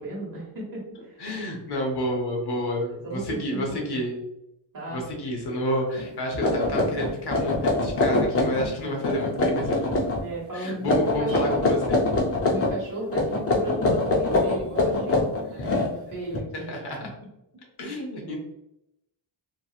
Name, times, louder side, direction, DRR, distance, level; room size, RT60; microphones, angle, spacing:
voice 1, 0.0-1.2 2.0-2.2 2.9-3.6 3.9-4.0 4.7-5.0 10.2-11.7 12.5-16.7 18.2-18.4, right 2 dB, 45° right, -4 dB, 1.3 m, -35 dB
voice 2, 1.2-4.2 4.9-10.0 10.5-12.0 16.5-17.1 17.8-18.4, equal, 55° left, 1 dB, 0.8 m, -29 dB
sound 1, 6.0-6.1 6.4-8.7 9.0-10.2 10.8-12.7 13.1-16.4, left 2 dB, 30° left, 0.5 m, -24 dB
2.9 x 2.7 x 2.3 m, 0.84 s
wide cardioid pair, 140°, 47 cm